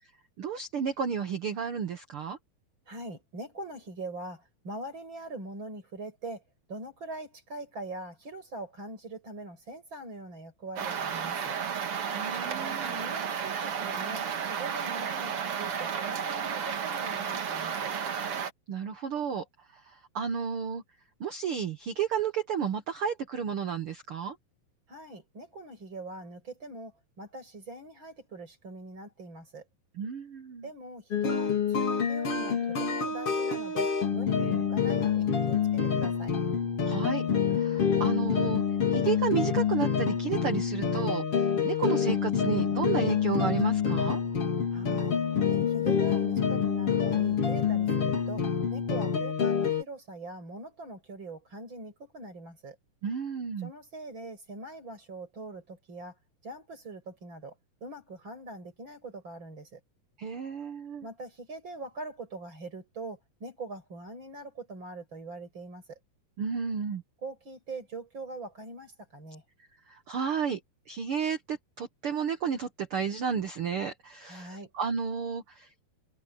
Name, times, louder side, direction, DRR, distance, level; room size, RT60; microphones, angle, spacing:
voice 1, 0.4-2.4 12.1-12.9 18.7-19.4 19.9-20.8 21.2-24.4 30.0-30.7 34.4-34.7 36.8-37.3 37.5-38.6 38.9-44.2 53.0-53.7 60.2-61.0 66.4-67.0 69.9-70.6 70.9-75.7, right 7 dB, 75° right, 1.2 m, -32 dB
voice 2, 2.9-6.4 6.7-11.6 12.6-17.9 24.9-29.7 30.6-36.3 44.7-45.2 45.4-52.8 53.6-56.2 56.4-57.5 57.8-59.8 61.0-65.8 67.2-69.4 74.2-74.7, right 2 dB, 30° right, 7.4 m, -42 dB
sound 1, 10.8-18.5, right 7 dB, 45° right, 2.2 m, -32 dB
sound 2, 31.1-49.8, left 7 dB, 40° left, 4.3 m, -27 dB
omnidirectional pair, 4.3 m